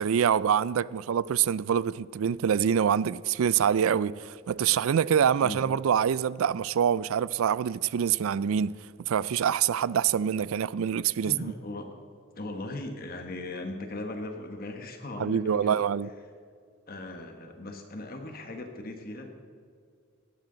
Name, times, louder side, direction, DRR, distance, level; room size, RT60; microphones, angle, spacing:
voice 1, 0.0-11.5 15.2-16.1, right 8 dB, 75° right, 0.4 m, -25 dB
voice 2, 11.2-11.9 12.4-15.8 16.9-19.3, left 2 dB, 45° left, 1.2 m, -38 dB
18.5 x 15.0 x 3.9 m
head